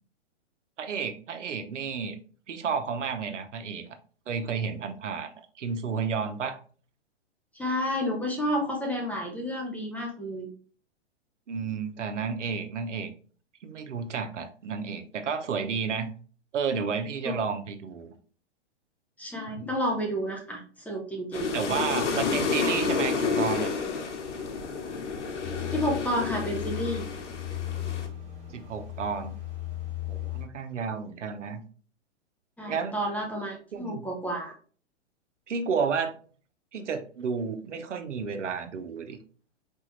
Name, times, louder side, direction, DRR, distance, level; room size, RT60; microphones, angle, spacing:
voice 1, 0.8-2.2 2.5-4.0 4.3-6.6 11.5-13.1 13.6-16.1 16.5-18.1 19.5-19.7 21.5-23.7 28.5-29.4 30.1-31.6 32.6-33.0 33.7-34.0 35.5-36.1 36.7-39.2, right 6 dB, 85° right, 8 dB, 0.9 m, -31 dB
voice 2, 7.5-10.5 17.2-17.4 19.2-21.5 25.7-27.1 32.6-34.5, equal, 5° left, 0 dB, 0.7 m, -30 dB
sound 1, 21.3-28.1, left 5 dB, 80° left, 1.1 m, -30 dB
sound 2, 25.4-30.4, left 13 dB, 20° right, 1.9 m, -36 dB
4.2 x 3.4 x 3.1 m, 0.41 s
hypercardioid pair, 130°, 35 cm